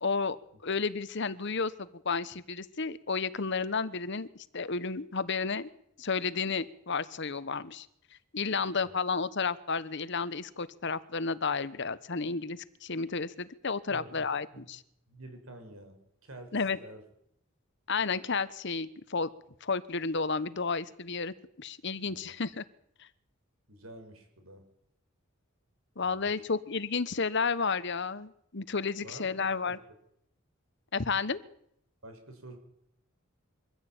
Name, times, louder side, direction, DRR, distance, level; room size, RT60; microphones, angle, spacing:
voice 1, 0.0-0.4 0.6-4.3 4.5-5.7 6.0-7.9 8.3-14.8 16.5-16.8 17.9-19.3 19.6-22.6 23.0-23.1 26.0-29.8 30.9-31.4, left 4 dB, 60° left, 15 dB, 1.1 m, -32 dB
voice 2, 8.7-9.0 13.9-14.7 15.1-17.0 22.1-22.4 23.7-24.6 26.0-26.4 29.0-29.8 32.0-32.6, right 1 dB, 90° right, 6 dB, 5.8 m, -49 dB
24.0 x 14.5 x 8.9 m, 0.73 s
head